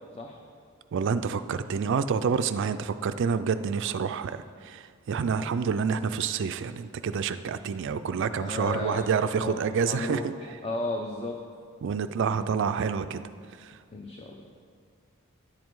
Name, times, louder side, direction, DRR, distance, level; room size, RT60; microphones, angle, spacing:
voice 1, 0.9-10.3 11.8-13.2 13.6-13.7, right 6 dB, 60° right, 11 dB, 0.4 m, -28 dB
voice 2, 8.3-11.4 12.3-12.5 13.9-14.3, left 2 dB, 30° left, 2 dB, 0.6 m, -34 dB
10.5 x 7.4 x 4.6 m, 2.1 s
head